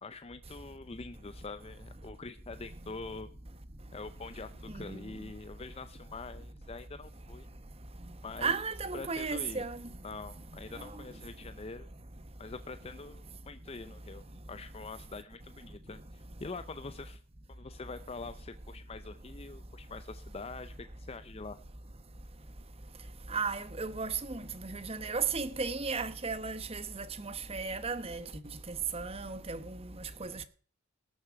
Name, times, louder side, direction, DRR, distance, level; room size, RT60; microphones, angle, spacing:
voice 1, 0.0-3.3 3.9-7.5 8.2-8.6 8.9-9.6 10.0-11.9 12.4-17.2 17.5-21.6, left 3 dB, 30° left, 0.6 m, -45 dB
voice 2, 8.4-9.8 23.3-28.3 28.7-29.9 30.2-30.4, right 5 dB, 30° right, 1.0 m, -35 dB
19.0 x 7.0 x 4.7 m
head